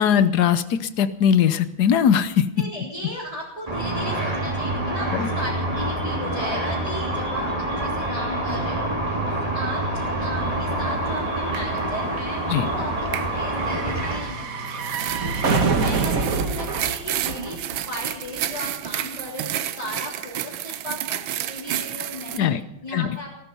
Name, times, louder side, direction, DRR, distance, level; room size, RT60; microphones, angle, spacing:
voice 1, 0.0-2.4 5.1-5.3 12.5-12.7 22.4-22.6 22.9-23.2, left 8 dB, 60° left, 12 dB, 1.2 m, -20 dB
voice 2, 2.6-8.9 9.3-14.6 15.2-17.6 17.9-21.2 21.5-22.5 22.8-23.3, equal, 15° left, -7 dB, 3.6 m, -35 dB
Car / Traffic noise roadway noise / Engine, 3.7-14.2, right 1 dB, 15° right, 3.1 m, -26 dB
sound 1, 7.5-7.6 7.8-18.2 18.5-18.6, right 4 dB, 50° right, 1.6 m, -28 dB
sound 2, 11.2-11.3 11.5-11.9 13.1-13.3 14.7-22.4, right 11 dB, 80° right, 1.5 m, -31 dB
18.0 x 13.5 x 5.5 m, 0.86 s
omnidirectional pair, 2.2 m